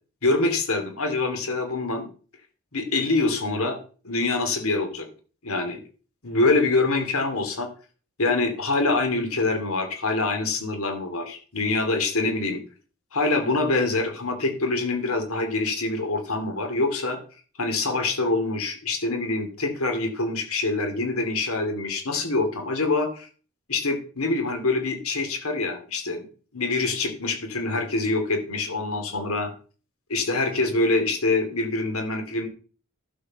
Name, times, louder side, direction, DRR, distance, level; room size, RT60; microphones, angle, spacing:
voice 1, 0.2-2.1 2.7-3.8 4.0-5.1 5.4-5.8 6.2-7.7 8.2-12.6 13.1-17.2 17.6-23.3 23.7-26.3 26.5-29.5 30.1-32.5, left 3 dB, 75° left, 5 dB, 2.8 m, -25 dB
12.0 x 5.3 x 6.6 m, 0.40 s
head